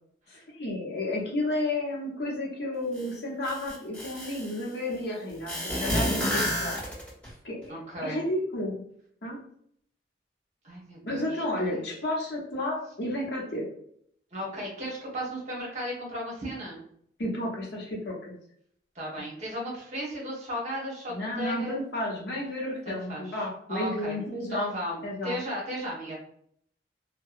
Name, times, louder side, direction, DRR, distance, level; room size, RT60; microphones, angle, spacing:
voice 1, 0.3-6.8 7.4-8.8 9.2-9.4 11.0-13.6 17.2-18.3 21.1-24.7 25.0-25.4, left 1 dB, 70° left, -3 dB, 0.8 m, -32 dB
sound 1, 3.0-3.1 3.4-4.6 5.5-7.3, equal, 10° left, 1.5 m, -29 dB
voice 2, 7.7-8.2 10.6-11.8 14.3-16.8 18.9-21.8 22.8-24.2 24.5-26.2, equal, 40° right, -3 dB, 0.9 m, -35 dB
2.7 x 2.1 x 2.4 m, 0.67 s
head